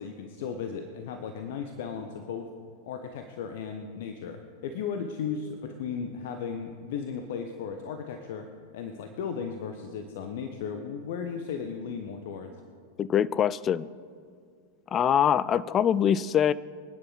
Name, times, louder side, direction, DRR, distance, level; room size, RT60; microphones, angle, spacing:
voice 1, 0.0-2.5 2.8-8.5 8.7-12.6, left 6 dB, 55° left, 6 dB, 1.0 m, -35 dB
voice 2, 13.0-13.9 14.9-16.5, left 9 dB, 25° left, 18 dB, 0.4 m, -23 dB
25.0 x 9.8 x 4.1 m, 2.1 s
figure-of-eight pair, 90°, 0 cm